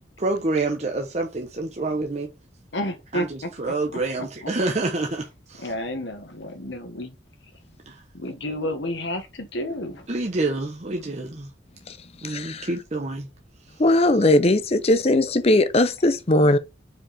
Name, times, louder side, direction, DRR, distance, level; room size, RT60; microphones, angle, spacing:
voice 1, 0.2-2.3 3.1-5.7 7.9-8.0 10.1-11.5 12.2-13.3, right 2 dB, 35° right, 0.8 m, -27 dB
voice 2, 2.7-3.5 3.9-4.5 5.6-7.1 8.1-10.1, left 1 dB, 75° left, 1.5 m, -31 dB
voice 3, 12.2-12.7 13.8-16.6, left 1 dB, 35° left, 0.6 m, -19 dB
5.1 x 4.7 x 4.2 m
head